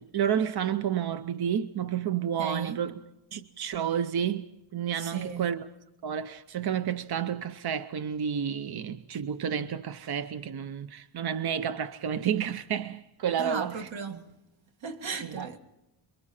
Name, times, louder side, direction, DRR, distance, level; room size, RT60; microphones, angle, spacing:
voice 1, 0.0-3.0 3.3-5.7 6.0-13.9 15.2-15.6, right 8 dB, 55° right, 0.7 m, -30 dB
voice 2, 2.4-2.8 5.0-5.5 13.4-14.3 14.8-15.6, right 6 dB, 80° right, 2.0 m, -36 dB
29.0 x 23.0 x 4.3 m
wide cardioid pair, 165°, 45 cm